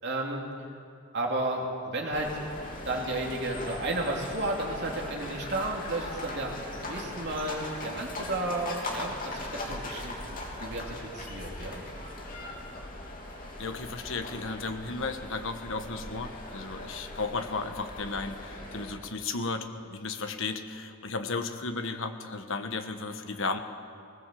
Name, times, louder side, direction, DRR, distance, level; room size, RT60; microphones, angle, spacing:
voice 1, 0.0-0.4 1.1-2.3 2.8-11.8, right 2 dB, 50° right, 0 dB, 3.2 m, -33 dB
sound 1, 2.1-18.9, left 1 dB, 40° left, 3.3 m, -40 dB
voice 2, 13.6-23.6, left 3 dB, 65° left, 7 dB, 1.5 m, -34 dB
20.0 x 19.5 x 7.8 m, 2.5 s
head